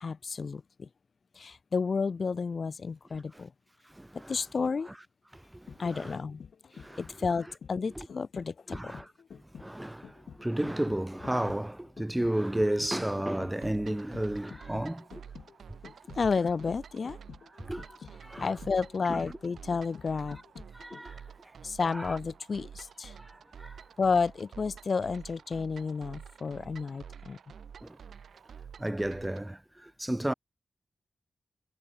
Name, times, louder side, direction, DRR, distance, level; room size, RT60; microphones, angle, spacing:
voice 1, 0.0-0.9 1.4-3.5 4.3-4.9 5.8-6.4 7.2-9.0 16.1-17.2 18.4-20.4 21.6-23.1 24.0-27.4, left 5 dB, 60° left, 0.3 m, -31 dB
voice 2, 4.0-4.3 5.5-6.2 6.7-7.0 8.0-8.1 8.7-9.1 9.5-15.0 17.6-18.0 18.2-18.5 19.1-19.2 20.7-21.2 21.9-22.2 23.2-23.3 23.6-23.8 27.8-28.0 28.8-30.3, right 1 dB, 15° right, 0.7 m, -33 dB
sound 1, 5.4-21.3 21.6-21.7, left 6 dB, 75° left, 3.8 m, -50 dB
sound 2, 13.6-29.5, right 7 dB, 80° right, 1.1 m, -49 dB
cardioid pair, 45°, 0 cm